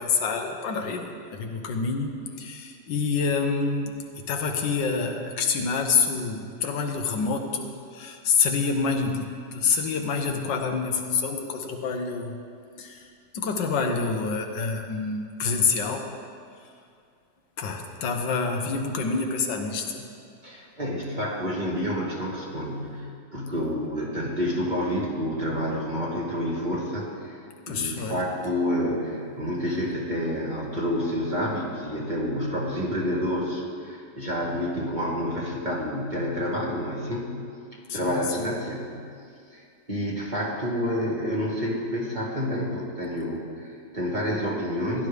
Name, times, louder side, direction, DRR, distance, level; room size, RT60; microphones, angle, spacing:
voice 1, 0.0-12.3 12.8-13.1 13.3-16.1 17.6-20.0 27.7-28.2 37.9-38.5, left 5 dB, 85° left, 4 dB, 1.7 m, -27 dB
voice 2, 20.4-23.1 23.3-27.4 27.7-37.4 37.9-39.0 39.5-45.1, equal, 25° right, -4 dB, 1.9 m, -29 dB
16.0 x 11.5 x 3.4 m, 2.3 s
omnidirectional pair, 1.9 m